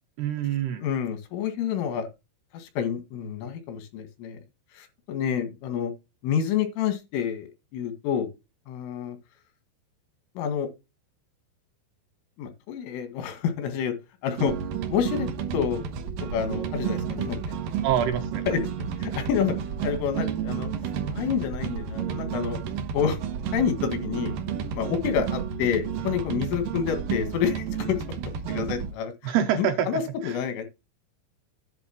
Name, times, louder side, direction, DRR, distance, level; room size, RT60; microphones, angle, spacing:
voice 1, 0.2-0.9 17.8-18.5 29.2-30.4, right 9 dB, 75° right, 2.5 m, -26 dB
voice 2, 0.8-2.1 2.5-4.4 4.7-5.9 6.2-8.3 8.7-9.2 10.4-10.7 12.4-13.9 14.2-14.5 14.9-15.9 16.3-17.4 18.5-18.6 19.0-19.5 19.8-20.7 21.1-22.6 22.9-23.2 23.5-24.3 24.7-27.7 28.5-30.7, left 8 dB, 90° left, 4.3 m, -28 dB
sound 1, 14.4-28.9, right 7 dB, 90° right, 1.9 m, -31 dB
10.5 x 3.6 x 7.4 m
omnidirectional pair, 5.5 m